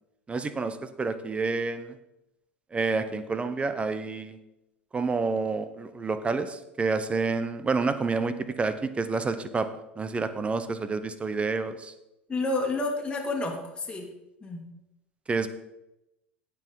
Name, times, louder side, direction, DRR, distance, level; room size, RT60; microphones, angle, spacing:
voice 1, 0.3-1.9 2.7-4.4 4.9-9.7 10.0-11.9 15.3-15.5, right 4 dB, 20° right, 12 dB, 0.9 m, -29 dB
voice 2, 12.3-14.1 14.4-14.7, left 2 dB, 15° left, 0 dB, 2.4 m, -30 dB
17.0 x 5.9 x 4.1 m, 0.89 s
figure-of-eight pair, 70°, 6 cm